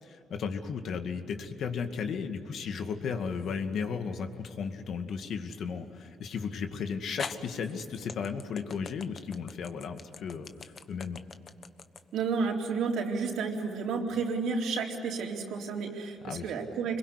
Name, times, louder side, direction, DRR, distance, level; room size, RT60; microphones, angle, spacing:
voice 1, 0.0-11.2 16.2-16.5, left 6 dB, 65° left, 6 dB, 2.2 m, -35 dB
sound 1, 3.1-3.7 4.4-4.6 6.4-6.5 7.2-13.4, left 5 dB, 45° left, 1.2 m, -44 dB
voice 2, 12.1-17.0, right 5 dB, 80° right, 0 dB, 4.0 m, -31 dB
26.0 x 22.5 x 10.0 m, 2.5 s
cardioid pair, 90°, 0 cm